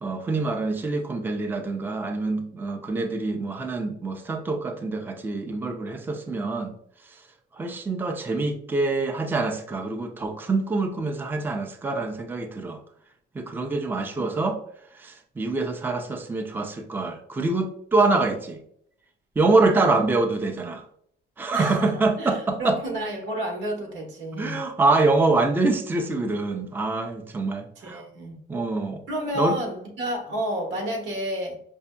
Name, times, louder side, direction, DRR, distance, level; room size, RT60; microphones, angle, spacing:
voice 1, 0.0-6.7 7.1-7.2 7.5-12.8 13.3-14.6 14.9-18.6 19.4-20.8 21.4-22.8 24.3-28.0 28.5-29.0 29.4-29.6, right 3 dB, 10° right, 5 dB, 0.4 m, -25 dB
voice 2, 14.1-14.5 19.6-19.9 21.5-24.6 27.8-28.4 29.1-31.6, equal, 90° right, 1 dB, 1.2 m, -31 dB
5.0 x 2.7 x 2.2 m, 0.67 s
cardioid pair, 130°, 19 cm